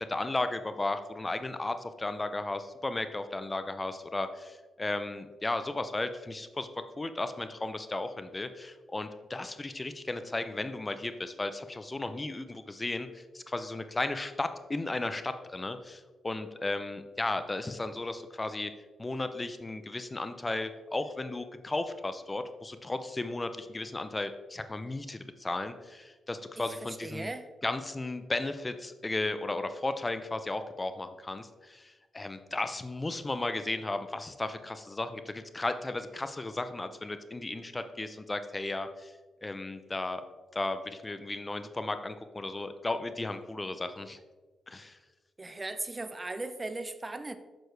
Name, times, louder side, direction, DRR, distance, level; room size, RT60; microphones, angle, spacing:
voice 1, 0.0-6.7 7.0-18.7 19.0-27.3 27.6-39.1 39.4-40.2 40.5-44.2 44.7-45.0, left 2 dB, 25° left, 10 dB, 0.6 m, -35 dB
voice 2, 26.6-27.5 45.4-47.4, right 2 dB, 30° right, 10 dB, 0.6 m, -38 dB
6.5 x 6.2 x 3.3 m, 1.2 s
supercardioid pair, 45°, 0 cm